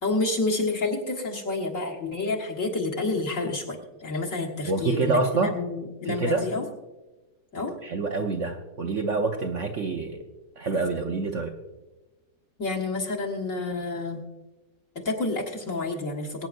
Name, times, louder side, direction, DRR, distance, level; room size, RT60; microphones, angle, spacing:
voice 1, 0.0-6.7 7.5-7.7 12.6-14.2 15.0-16.5, left 3 dB, 45° left, -1 dB, 1.9 m, -29 dB
voice 2, 4.7-5.5 6.1-6.5 7.8-10.2 10.6-11.5, right 3 dB, 55° right, 3 dB, 0.9 m, -26 dB
22.5 x 9.2 x 2.5 m, 1.1 s
omnidirectional pair, 1.9 m